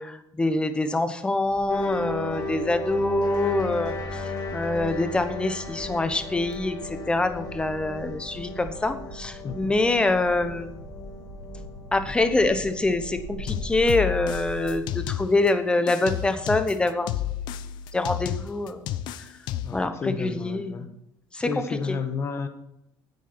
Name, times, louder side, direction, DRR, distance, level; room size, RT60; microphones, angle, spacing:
voice 1, 0.0-10.8 11.9-17.1 17.9-18.9 19.7-20.8 21.3-21.6, left 2 dB, 10° left, 9 dB, 1.0 m, -25 dB
sound 1, 1.4-14.8, right 2 dB, 85° right, 2.2 m, -42 dB
sound 2, 1.7-13.8, left 3 dB, 55° left, 2.1 m, -36 dB
voice 2, 9.4-9.7 19.6-20.9 21.5-22.5, left 5 dB, 35° left, 9 dB, 1.3 m, -31 dB
sound 3, 13.5-15.5 15.9-19.9, left 11 dB, 70° left, 0.7 m, -31 dB
9.6 x 8.3 x 6.1 m, 0.81 s
cardioid pair, 130°, 8 cm